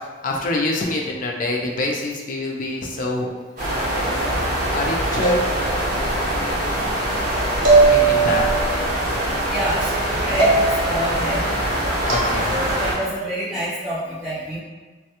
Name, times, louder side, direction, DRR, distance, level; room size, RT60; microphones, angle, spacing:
voice 1, 0.2-3.3 4.7-5.4 7.7-8.6 11.8-12.6, left 2 dB, 50° left, -1 dB, 0.4 m, -26 dB
sound 1, 3.6-12.9, right 1 dB, 50° right, 1.2 m, -23 dB
sound 2, 5.2-6.0 7.6-8.6 10.4-11.0 12.1-12.3, right 3 dB, 80° right, 0.7 m, -18 dB
voice 2, 9.5-11.4 12.5-14.6, right 1 dB, 5° right, -10 dB, 0.5 m, -27 dB
3.1 x 2.2 x 2.9 m, 1.3 s
head